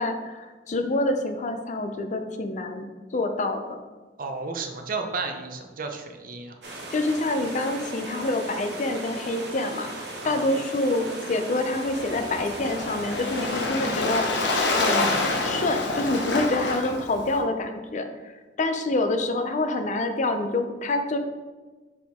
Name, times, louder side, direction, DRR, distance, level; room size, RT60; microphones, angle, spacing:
voice 1, 0.0-2.9 3.1-3.8 6.9-9.9 10.2-14.2 14.7-18.1 18.6-21.2, left 2 dB, 45° left, 7 dB, 0.5 m, -27 dB
voice 2, 4.2-6.5 10.2-10.4, right 4 dB, 55° right, 4 dB, 0.7 m, -32 dB
sound 1, 6.6-13.7, right 1 dB, 75° right, 1.2 m, -38 dB
Waves surf, 11.7-17.4, left 2 dB, 80° left, 0.9 m, -27 dB
5.9 x 4.9 x 3.5 m, 1.3 s
head